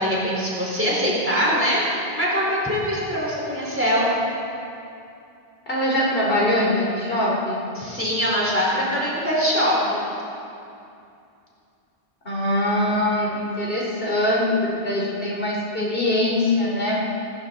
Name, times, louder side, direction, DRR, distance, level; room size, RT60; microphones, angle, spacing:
voice 1, 0.0-4.1 7.7-10.0, equal, 10° right, -6 dB, 4.4 m, -23 dB
voice 2, 5.7-7.7 12.3-17.0, left 1 dB, 65° left, -5 dB, 3.6 m, -22 dB
23.5 x 14.0 x 4.2 m, 2.6 s
omnidirectional pair, 1.0 m